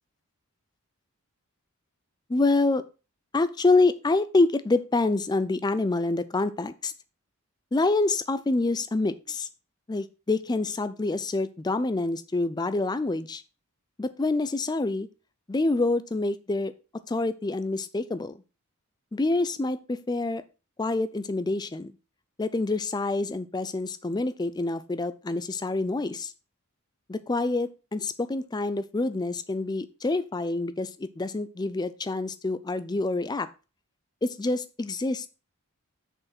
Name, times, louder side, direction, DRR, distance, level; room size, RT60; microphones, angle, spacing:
voice 1, 2.3-2.8 3.3-6.9 7.7-9.5 9.9-13.4 14.0-15.1 15.5-16.7 17.1-18.3 19.1-20.4 20.8-21.9 22.4-26.3 27.1-33.5 34.2-35.3, left 2 dB, 20° left, 14 dB, 0.4 m, -27 dB
6.3 x 5.0 x 4.2 m, 0.32 s
head